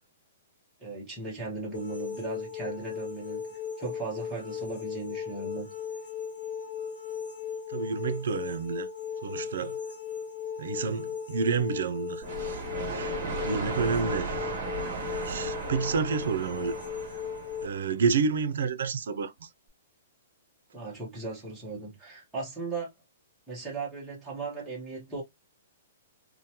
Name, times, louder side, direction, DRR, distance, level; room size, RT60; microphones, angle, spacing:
voice 1, 0.8-3.5 3.8-5.7 20.7-22.9 23.5-25.2, right 3 dB, 5° right, 0.8 m, -37 dB
sound 1, 1.7-17.7, left 7 dB, 65° left, 1.0 m, -37 dB
voice 2, 7.7-8.9 9.2-9.8 10.6-12.6 12.9-14.5 15.2-16.7 17.6-19.5, right 5 dB, 65° right, 0.4 m, -29 dB
sound 2, 12.2-17.9, right 3 dB, 30° right, 1.4 m, -35 dB
2.9 x 2.1 x 2.7 m
hypercardioid pair, 175°, 0 cm